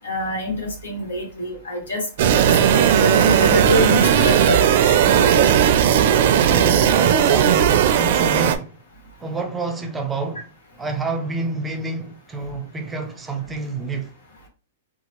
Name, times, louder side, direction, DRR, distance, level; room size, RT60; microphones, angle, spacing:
voice 1, 0.0-4.6 4.8-5.5, left 2 dB, 85° left, 1.4 m, -26 dB
sound 1, 2.2-8.6, right 9 dB, 60° right, 0.4 m, -16 dB
voice 2, 6.5-8.7 9.2-10.5 10.8-14.1, right 3 dB, 10° right, 0.6 m, -28 dB
2.9 x 2.4 x 2.9 m
hypercardioid pair, 130°, 0 cm